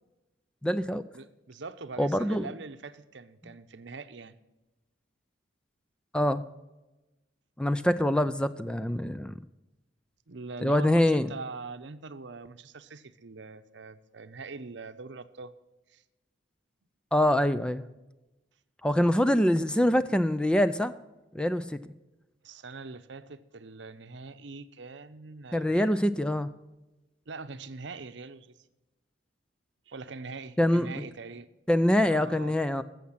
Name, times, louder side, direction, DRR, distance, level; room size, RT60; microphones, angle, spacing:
voice 1, 0.6-1.0 2.0-2.5 6.1-6.4 7.6-9.3 10.6-11.3 17.1-17.8 18.8-20.9 21.3-21.8 25.5-26.5 30.6-30.9 31.7-32.8, left 1 dB, 5° left, 0.3 m, -24 dB
voice 2, 1.1-4.4 10.3-15.5 15.9-16.0 22.4-25.9 27.3-28.5 29.9-31.5 32.0-32.5, right 4 dB, 65° right, 0.7 m, -43 dB
14.5 x 7.3 x 5.7 m
head